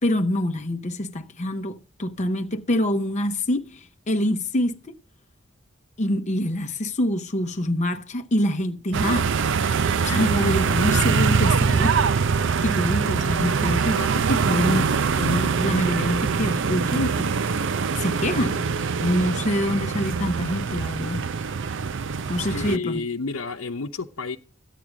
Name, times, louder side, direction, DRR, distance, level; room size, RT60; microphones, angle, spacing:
voice 1, 0.0-5.0 6.0-9.3 10.0-12.0 12.6-17.6 18.0-18.6 19.0-21.2 22.3-23.0, left 1 dB, 35° left, 0.8 m, -25 dB
sound 1, 8.9-22.8, right 5 dB, 65° right, 0.5 m, -23 dB
voice 2, 22.4-24.4, left 4 dB, 85° left, 0.8 m, -30 dB
13.5 x 9.1 x 5.0 m
head